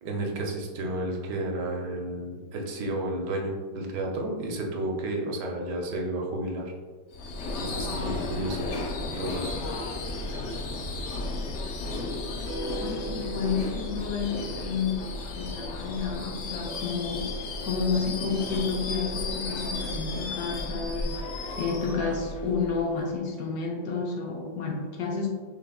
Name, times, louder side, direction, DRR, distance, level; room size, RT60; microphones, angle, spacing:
voice 1, 0.0-6.7 7.6-8.7 9.2-9.5, right 1 dB, 75° right, 0 dB, 1.3 m, -32 dB
Subway metro underground / Screech, 7.1-23.1, left 2 dB, 90° left, 0.6 m, -34 dB
sound 1, 12.5-14.8, right 2 dB, 55° right, 1.2 m, -39 dB
voice 2, 12.8-25.3, left 5 dB, 65° left, 0 dB, 1.0 m, -31 dB
5.8 x 3.5 x 2.3 m, 1.5 s
omnidirectional pair, 1.8 m